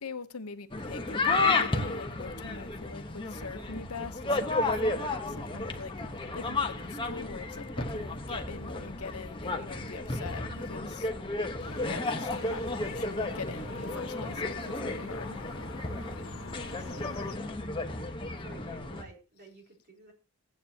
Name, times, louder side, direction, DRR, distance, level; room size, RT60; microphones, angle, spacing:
voice 1, 0.0-11.1 11.9-13.1 13.3-15.4, left 4 dB, 80° left, 0.9 m, -43 dB
sound 1, 0.7-19.0, left 3 dB, 20° left, 1.1 m, -33 dB
sound 2, 11.6-17.4, left 3 dB, 60° left, 1.2 m, -45 dB
voice 2, 16.4-17.8 18.4-20.1, right 2 dB, 45° right, 4.4 m, -52 dB
16.5 x 9.4 x 2.9 m
head